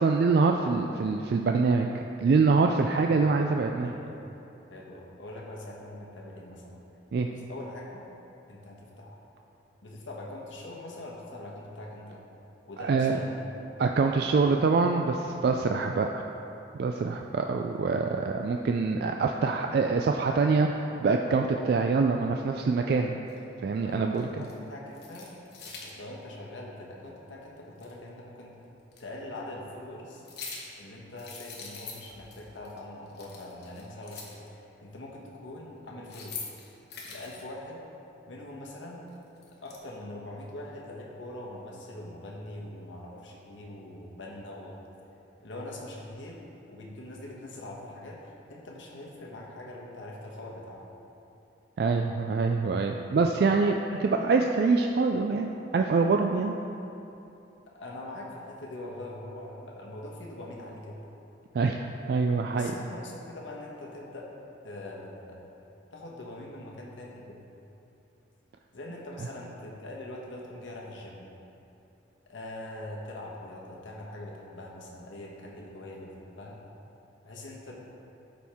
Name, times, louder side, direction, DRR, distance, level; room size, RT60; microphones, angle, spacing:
voice 1, 0.0-1.9 2.2-3.9 7.1-7.3 12.8-13.2 13.8-16.2 16.8-23.1 23.6-24.3 51.8-53.7 54.0-56.5 61.5-62.7, right 4 dB, 55° right, 3 dB, 0.3 m, -25 dB
voice 2, 3.8-4.2 4.7-6.8 7.3-8.0 8.5-9.2 9.8-12.2 12.7-13.5 23.8-24.1 24.4-25.3 25.6-28.5 29.0-30.2 30.8-36.4 37.0-37.8 38.3-39.0 39.6-44.9 45.4-46.4 46.7-50.8 52.9-53.3 53.9-54.3 57.7-61.0 62.5-64.3 64.6-65.5 65.9-67.4 68.7-71.3 72.3-76.6 77.2-77.8, left 1 dB, 85° left, -2 dB, 1.3 m, -43 dB
sound 1, 23.3-23.4 24.1-24.5 24.9-25.9 27.8-27.9 28.9-29.0 30.1-30.8 31.2-32.4 32.6-32.8 33.1-34.5 35.9-37.4 39.1-39.8, left 4 dB, 55° left, 1.1 m, -43 dB
13.0 x 4.4 x 3.5 m, 2.9 s
head